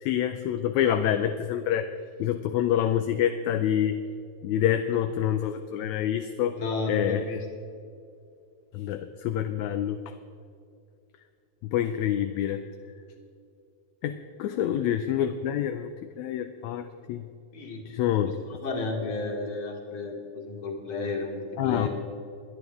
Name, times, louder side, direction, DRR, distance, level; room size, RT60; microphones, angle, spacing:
voice 1, 0.0-1.9 2.2-4.0 4.4-6.5 6.9-7.2 8.7-10.0 11.6-12.6 14.0-14.1 14.4-15.9 16.2-17.2 17.9-18.6 21.6-21.9, left 10 dB, 80° left, 8 dB, 1.8 m, -27 dB
voice 2, 6.5-7.5 14.5-14.6 17.5-17.8 18.5-21.9, left 3 dB, 45° left, 1 dB, 2.6 m, -32 dB
22.5 x 11.0 x 3.5 m, 2.5 s
omnidirectional pair, 3.5 m